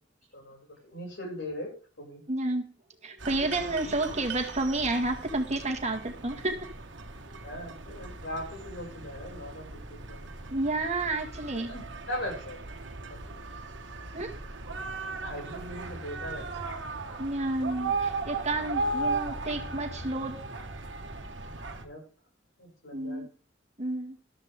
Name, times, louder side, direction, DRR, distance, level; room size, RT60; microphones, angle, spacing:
voice 1, 0.3-2.2 7.4-10.3 11.7-12.6 13.1-13.4 15.2-16.7 21.8-22.0 22.6-23.2, left 1 dB, 70° left, -1 dB, 6.7 m, -40 dB
voice 2, 2.3-2.7 3.0-6.7 10.5-11.7 14.1-14.3 17.2-20.4 22.9-23.3 23.8-24.2, right 2 dB, 40° right, 5 dB, 2.0 m, -30 dB
sound 1, 3.2-21.8, right 3 dB, 80° right, 1.6 m, -37 dB
13.5 x 12.5 x 3.7 m, 0.39 s
head